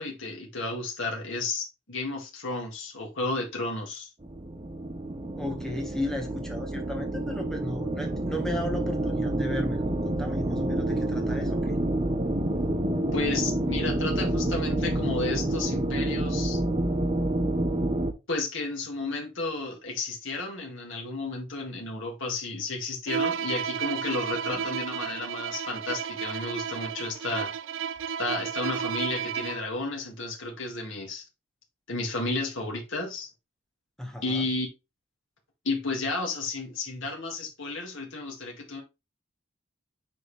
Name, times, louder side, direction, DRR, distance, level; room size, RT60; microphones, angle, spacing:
voice 1, 0.0-4.1 12.6-12.7 13.1-16.6 18.3-27.5 28.2-31.2 31.9-33.3 34.2-34.7 35.6-38.8, left 3 dB, 65° left, 2.0 m, -32 dB
sound 1, 4.2-18.1, right 1 dB, 30° right, 0.9 m, -28 dB
voice 2, 5.4-11.8 24.3-24.6 34.0-34.5, left 1 dB, ahead, 1.5 m, -35 dB
Bowed string instrument, 23.1-29.7, right 7 dB, 65° right, 0.4 m, -32 dB
7.7 x 4.1 x 3.3 m
head